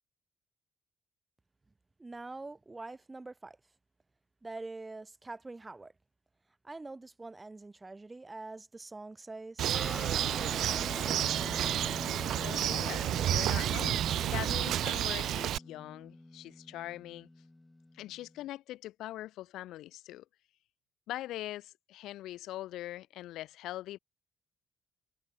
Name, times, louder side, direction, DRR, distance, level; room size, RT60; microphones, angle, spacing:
voice 1, 2.0-3.6 4.4-5.9 6.6-9.8, right 3 dB, 20° right, 7.5 m, -45 dB
Bird, 9.6-15.6, right 11 dB, 75° right, 0.5 m, -30 dB
Guitar, 9.7-18.5, left 2 dB, 15° left, 3.8 m, -44 dB
voice 2, 12.4-14.0 14.3-17.3 17.9-20.2 21.1-24.0, left 15 dB, 90° left, 2.1 m, -42 dB
cardioid pair, 90°, 0 cm